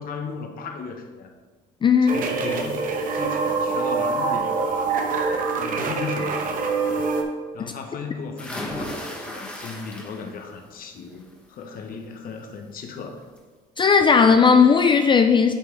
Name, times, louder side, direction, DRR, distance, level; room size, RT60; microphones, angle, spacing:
voice 1, 0.0-1.3 2.0-5.0 5.5-6.5 7.5-13.2, left 5 dB, 60° left, 4 dB, 1.2 m, -36 dB
voice 2, 1.8-2.2 13.8-15.5, left 5 dB, 30° left, 7 dB, 0.4 m, -16 dB
sound 1, 2.1-7.2, right 4 dB, 55° right, 1.0 m, -25 dB
sound 2, 8.4-10.5 10.9-11.3 12.7-12.8 13.2-13.3, left 1 dB, 5° left, 1.6 m, -35 dB
8.7 x 5.8 x 3.4 m, 1.4 s
cardioid pair, 110°, 17 cm